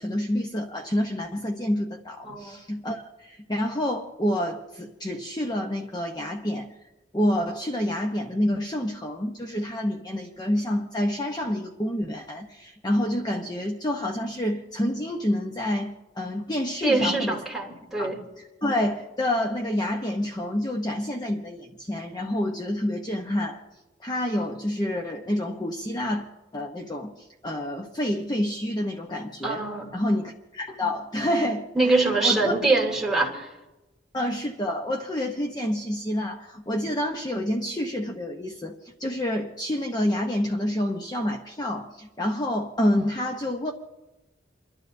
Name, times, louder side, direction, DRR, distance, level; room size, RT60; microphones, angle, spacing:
voice 1, 0.0-6.7 7.1-17.4 18.0-23.6 24.0-26.3 26.5-29.6 29.9-31.7 31.9-32.5 34.1-43.7, left 1 dB, 25° left, 1 dB, 0.8 m, -28 dB
voice 2, 2.2-2.6 16.8-18.2 29.4-29.9 31.7-33.5, right 3 dB, ahead, -3 dB, 2.7 m, -24 dB
29.5 x 12.0 x 2.6 m, 1.0 s
head